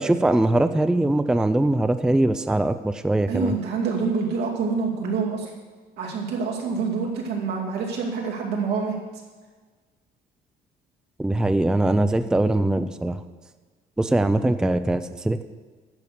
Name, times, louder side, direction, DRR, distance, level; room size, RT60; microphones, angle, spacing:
voice 1, 0.0-3.5 11.2-13.2 14.0-15.4, right 1 dB, 5° right, 10 dB, 0.4 m, -21 dB
voice 2, 3.3-5.5 6.0-9.0, right 5 dB, 80° right, -1 dB, 2.5 m, -26 dB
10.5 x 6.9 x 6.5 m, 1.4 s
cardioid pair, 110°, 17 cm